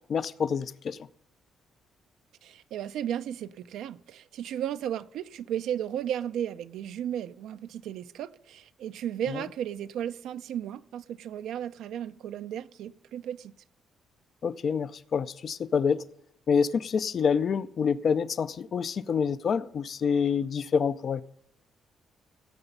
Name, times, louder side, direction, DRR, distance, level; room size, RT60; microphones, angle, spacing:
voice 1, 0.1-1.0 9.3-9.4 14.4-16.0 16.5-21.2, left 6 dB, 55° left, 0.4 m, -27 dB
voice 2, 2.4-13.5, right 10 dB, 80° right, 0.4 m, -34 dB
17.0 x 6.9 x 5.4 m
cardioid pair, 90°, 0 cm